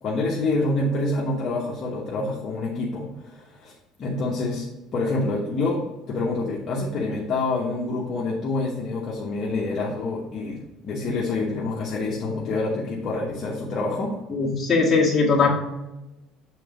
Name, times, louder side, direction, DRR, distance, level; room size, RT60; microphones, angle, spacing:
voice 1, 0.0-3.7 4.0-5.8 6.1-14.1, left 2 dB, 35° left, -5 dB, 1.1 m, -27 dB
voice 2, 14.3-15.5, left 4 dB, 20° left, -5 dB, 1.7 m, -20 dB
7.6 x 3.9 x 5.0 m, 0.99 s
cardioid pair, 170°, 0 cm